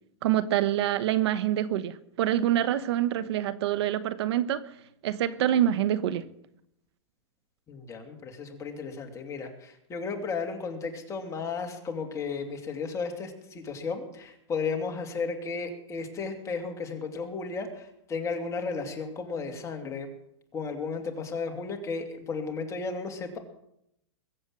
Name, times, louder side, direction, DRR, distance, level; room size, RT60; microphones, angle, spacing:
voice 1, 0.2-4.6 5.0-6.2, right 11 dB, 60° right, 15 dB, 1.0 m, -26 dB
voice 2, 7.7-20.1 20.5-23.4, left 4 dB, 20° left, 4 dB, 2.6 m, -34 dB
22.0 x 8.1 x 7.5 m, 0.78 s
hypercardioid pair, 140°, 15 cm